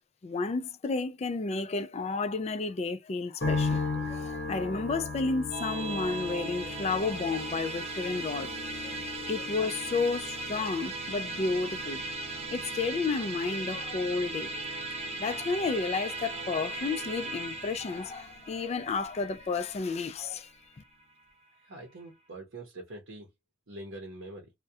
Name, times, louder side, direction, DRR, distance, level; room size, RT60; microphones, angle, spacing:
voice 1, 0.2-9.0 9.3-12.0 12.5-14.6 15.2-20.5, left 4 dB, 35° left, 0.3 m, -32 dB
sound 1, 3.4-18.6 18.9-19.8, left 3 dB, 50° left, 0.9 m, -39 dB
Musical instrument, 5.5-21.0, right 3 dB, 30° right, 0.5 m, -38 dB
voice 2, 21.6-23.3 23.7-24.5, right 2 dB, 70° right, 0.7 m, -44 dB
2.3 x 2.1 x 2.6 m
head